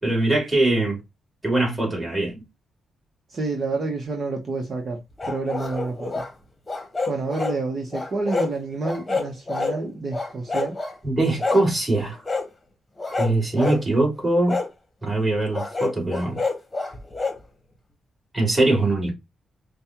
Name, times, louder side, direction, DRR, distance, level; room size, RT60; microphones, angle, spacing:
voice 1, 0.0-1.0 1.4-2.4 11.0-12.2 13.2-14.6 15.0-16.4 18.3-19.2, right 2 dB, 15° right, 2.8 m, -22 dB
voice 2, 3.3-5.0 5.3-6.2 7.1-10.8, right 3 dB, 45° right, 1.0 m, -28 dB
sound 1, 5.2-6.3 6.7-7.6 7.9-8.5 8.8-9.8 10.1-10.9 11.4-11.7 12.2-12.5 13.0-13.8 14.5-14.7 15.5-17.4, left 3 dB, 20° left, 1.1 m, -27 dB
5.2 x 2.3 x 2.9 m
cardioid pair, 90°, 0 cm